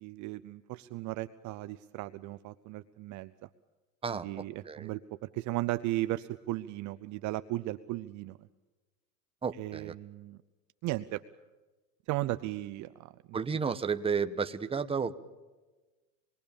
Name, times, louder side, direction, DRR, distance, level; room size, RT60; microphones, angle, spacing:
voice 1, 0.0-3.5 4.1-8.4 9.6-10.4 10.8-11.2 12.1-13.4, right 17 dB, 35° right, 13 dB, 0.8 m, -36 dB
voice 2, 4.0-4.9 9.4-9.9 13.3-15.2, right 6 dB, 10° right, 9 dB, 1.2 m, -32 dB
27.0 x 21.5 x 7.1 m, 1.2 s
hypercardioid pair, 120°, 49 cm